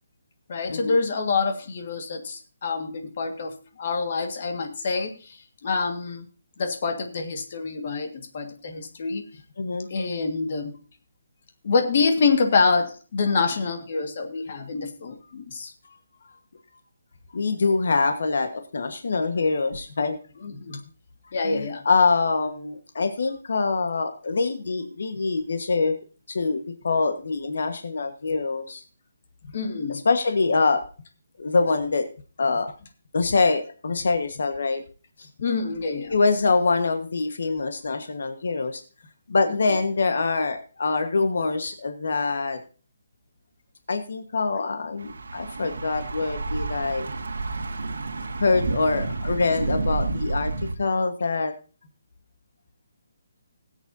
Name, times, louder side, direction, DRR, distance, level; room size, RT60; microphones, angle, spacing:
voice 1, 0.5-6.3 6.6-9.2 9.9-10.8 11.6-15.7 20.4-20.8 21.3-21.8 29.5-30.0 35.4-36.1 39.5-39.6, left 4 dB, 40° left, 5 dB, 1.6 m, -26 dB
voice 2, 9.6-9.9 17.3-20.2 20.7-20.8 21.4-26.0 26.3-28.8 29.9-30.8 31.4-32.0 32.4-32.7 33.1-34.8 35.2-35.3 36.1-38.8 39.3-42.6 43.9-47.1 48.4-50.5 50.8-51.5, left 4 dB, 65° left, 7 dB, 1.3 m, -24 dB
Thunder / Bicycle, 45.0-50.7, right 3 dB, 85° right, 1.5 m, -30 dB
19.5 x 8.1 x 2.7 m, 0.36 s
hypercardioid pair, 175°, 0 cm